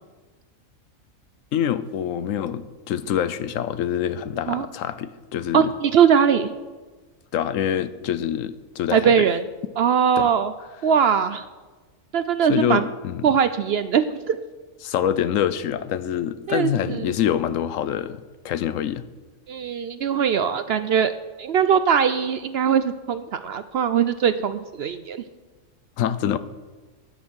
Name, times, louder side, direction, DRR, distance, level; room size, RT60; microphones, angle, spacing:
voice 1, 1.5-5.7 7.3-9.3 10.2-10.3 12.5-13.3 14.8-19.0 26.0-26.4, left 10 dB, 80° left, 14 dB, 1.0 m, -25 dB
voice 2, 5.5-6.5 8.9-9.4 9.8-10.5 10.8-11.4 12.1-12.9 13.2-14.4 16.5-17.1 19.5-21.1 21.4-25.2, right 7 dB, 65° right, 11 dB, 0.6 m, -21 dB
9.6 x 9.4 x 6.3 m, 1.3 s
omnidirectional pair, 1.4 m